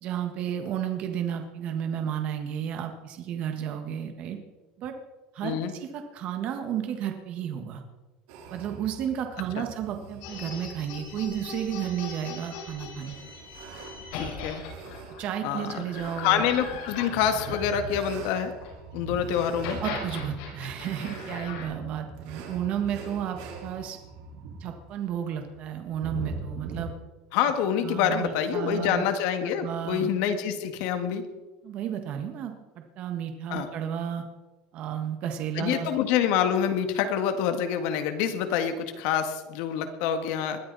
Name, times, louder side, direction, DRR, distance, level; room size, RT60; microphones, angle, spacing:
voice 1, 0.0-4.4 4.8-4.9 5.3-7.8 8.5-13.2 15.2-16.4 19.8-24.0 24.6-26.9 27.8-29.1 29.4-30.1 31.6-34.2 34.7-35.9, right 9 dB, 50° right, 5 dB, 1.6 m, -32 dB
sound 1, 8.3-26.8, right 3 dB, 85° right, 4.2 m, -42 dB
sound 2, 10.2-18.7 19.4-21.6, left 4 dB, 90° left, 6.6 m, -40 dB
voice 2, 14.1-14.6 15.4-15.8 16.2-18.5 18.9-19.8 27.3-31.2 33.5-33.7 35.6-40.6, left 8 dB, 70° left, 7 dB, 1.9 m, -26 dB
21.0 x 13.0 x 4.2 m, 1.1 s
cardioid pair, 150°, 3 cm